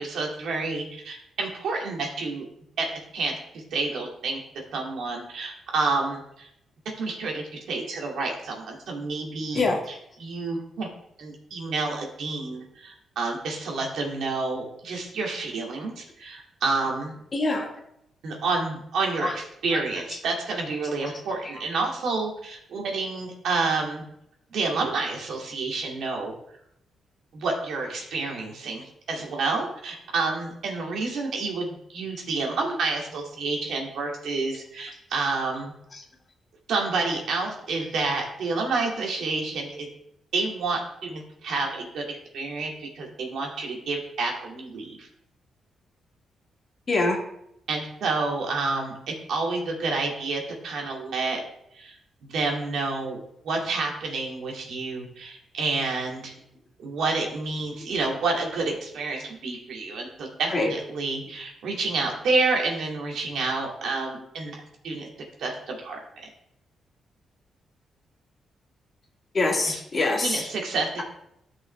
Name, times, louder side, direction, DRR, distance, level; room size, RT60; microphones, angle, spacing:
voice 1, 0.0-2.5 2.8-4.4 4.7-6.5 7.0-9.6 10.2-10.9 11.2-17.2 18.2-24.0 24.5-26.3 27.3-35.7 36.7-39.9 40.3-45.1 47.7-51.4 51.7-52.0 52.2-53.2 53.4-56.3 56.8-64.6 64.8-65.1 65.4-66.0 69.7-69.8 70.2-71.0, right 3 dB, 75° right, 0 dB, 2.1 m, -29 dB
voice 2, 17.3-17.7 19.2-19.4 19.7-19.8 35.9-36.0 46.9-47.2 60.5-60.7 69.3-70.5, left 2 dB, 30° left, 0 dB, 1.9 m, -24 dB
13.0 x 5.6 x 3.3 m, 0.77 s
cardioid pair, 130°, 0 cm